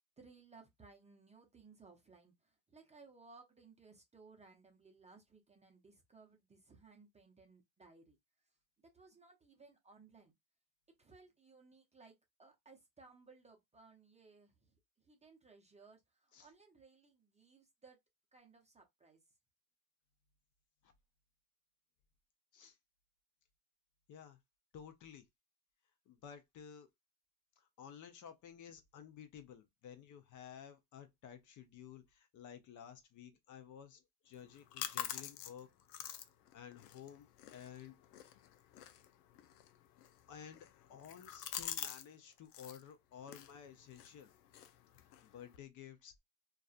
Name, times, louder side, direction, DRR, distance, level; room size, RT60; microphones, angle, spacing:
voice 1, 0.2-8.2 8.8-10.3 11.0-18.0 18.3-19.2, right 4 dB, 15° right, 0.6 m, -62 dB
voice 2, 24.1-24.4 24.7-25.2 26.1-26.9 27.6-35.7 35.9-37.9 40.3-44.3 45.0-46.2, left 8 dB, 40° left, 0.6 m, -54 dB
sound 1, 34.3-42.1 42.3-42.8 43.2-45.6, left 11 dB, 85° left, 0.6 m, -47 dB
2.4 x 2.3 x 2.4 m
supercardioid pair, 90°, 46 cm